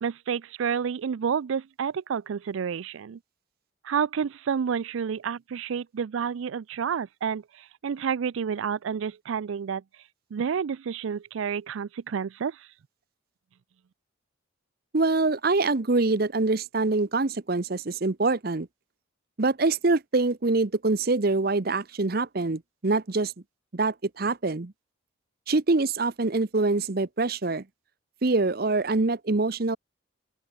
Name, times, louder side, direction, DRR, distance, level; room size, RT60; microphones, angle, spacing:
voice 1, 0.0-3.2 3.8-9.8 10.3-12.7, right 7 dB, 80° right, 0.4 m, -30 dB
voice 2, 14.9-18.7 19.4-23.3 23.7-24.7 25.5-27.6 28.2-29.8, right 3 dB, 50° right, 0.8 m, -25 dB
open air
head